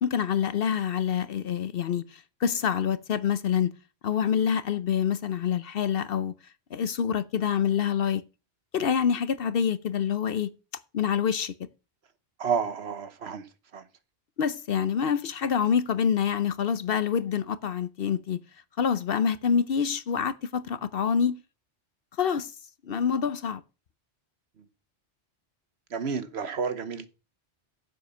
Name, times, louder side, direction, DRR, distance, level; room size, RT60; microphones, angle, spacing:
voice 1, 0.0-3.7 4.0-6.3 6.7-8.2 8.7-10.5 10.9-11.5 14.4-18.4 18.8-21.4 22.2-22.5 22.8-23.6, left 7 dB, 60° left, 0.8 m, -26 dB
voice 2, 12.4-13.4 13.7-13.8 25.9-27.1, right 6 dB, 65° right, 1.2 m, -30 dB
9.4 x 7.7 x 5.5 m
omnidirectional pair, 1.2 m